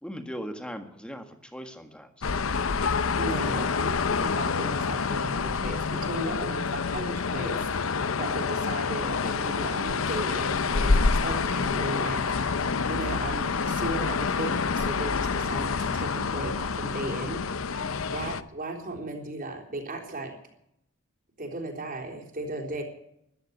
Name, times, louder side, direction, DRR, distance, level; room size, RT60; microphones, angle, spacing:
voice 1, 0.0-2.1 3.4-3.7 10.8-11.0 17.8-18.0, equal, 5° left, 6 dB, 1.8 m, -39 dB
sound 1, 2.2-18.4, left 5 dB, 80° left, 0.7 m, -27 dB
voice 2, 3.1-17.4 18.1-20.3 21.4-22.8, right 2 dB, 45° right, 1 dB, 3.8 m, -36 dB
14.0 x 12.0 x 8.2 m, 0.78 s
head